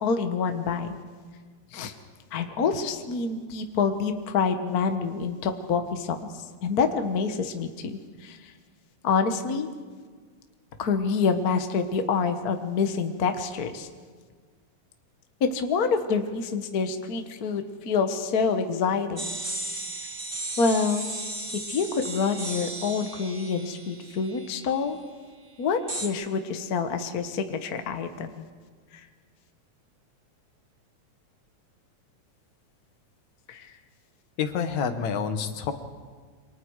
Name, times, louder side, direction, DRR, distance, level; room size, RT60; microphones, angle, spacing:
voice 1, 0.0-0.9 1.7-1.9 2.3-8.5 9.0-9.7 10.8-13.9 15.4-19.3 20.6-21.1 21.7-25.0 25.6-28.4 28.9-29.0 33.5-33.7, left 5 dB, 50° left, 7 dB, 1.1 m, -27 dB
sound 1, 19.2-24.9 25.9-26.1, right 2 dB, 20° right, 1.5 m, -35 dB
voice 2, 34.4-35.7, left 6 dB, 70° left, 7 dB, 2.6 m, -28 dB
27.5 x 25.0 x 4.8 m, 1.6 s
omnidirectional pair, 3.5 m